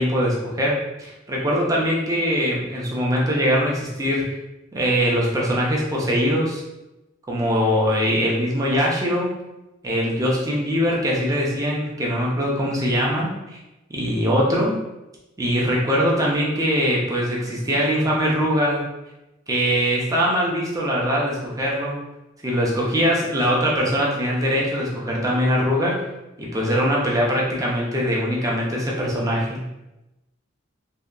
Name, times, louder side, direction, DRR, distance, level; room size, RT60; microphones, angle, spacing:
voice 1, 0.0-4.3 4.7-6.6 7.3-9.3 9.8-13.6 13.9-14.8 15.4-18.8 19.5-22.0 22.4-26.0 26.4-29.6, equal, 15° right, -3 dB, 0.5 m, -22 dB
2.7 x 2.2 x 2.3 m, 0.98 s
head